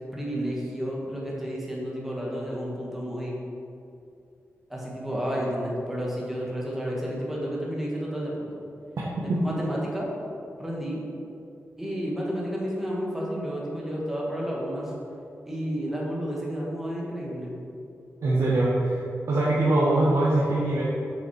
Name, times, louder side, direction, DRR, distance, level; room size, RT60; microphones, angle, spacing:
voice 1, 0.1-3.3 4.7-8.5 9.2-10.1 10.6-11.0 11.8-14.9 15.5-17.5, equal, 5° right, -4 dB, 1.6 m, -31 dB
voice 2, 18.2-19.0 19.3-20.8, right 2 dB, 75° right, -8 dB, 1.4 m, -22 dB
7.2 x 5.9 x 4.6 m, 2.6 s
wide cardioid pair, 155°, 5 cm